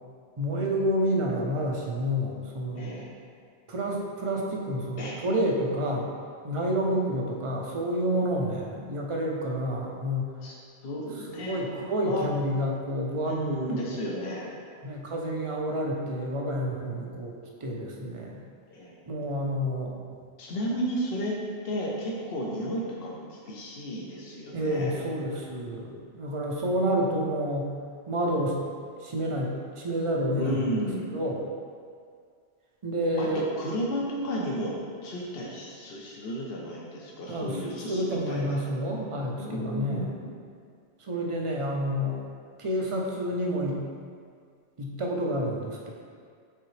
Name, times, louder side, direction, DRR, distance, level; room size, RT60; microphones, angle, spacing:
voice 1, 0.4-3.0 3.7-6.1 6.4-10.3 11.4-13.4 13.7-14.4 14.8-17.3 17.6-18.4 19.1-20.2 24.5-27.7 28.1-28.6 29.0-31.4 32.8-33.5 37.3-40.1 41.0-42.2 42.6-43.8 44.8-45.9, equal, 35° right, -1 dB, 0.7 m, -29 dB
voice 2, 10.8-11.6 12.1-12.3 13.2-14.5 18.7-19.0 20.4-21.4 21.6-25.0 30.4-31.2 33.2-34.7 35.0-38.8 39.4-40.4, equal, 60° left, -3 dB, 1.0 m, -33 dB
7.9 x 3.9 x 3.2 m, 2.1 s
omnidirectional pair, 1.2 m